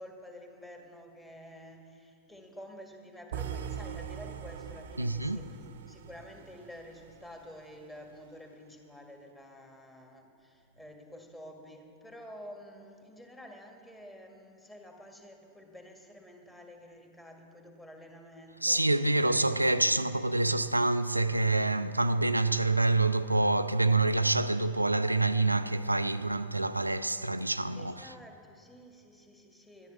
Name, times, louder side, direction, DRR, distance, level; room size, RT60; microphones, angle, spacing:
voice 1, 0.0-5.6 5.9-18.9 27.7-29.9, equal, 10° left, 1.9 m, -50 dB
sound 1, 3.3-7.4, right 8 dB, 60° right, 0.8 m, -41 dB
voice 2, 5.0-5.4 18.6-28.1, right 2 dB, 85° right, 0.3 m, -27 dB
12.0 x 10.5 x 7.1 m
figure-of-eight pair, 90°, 0 cm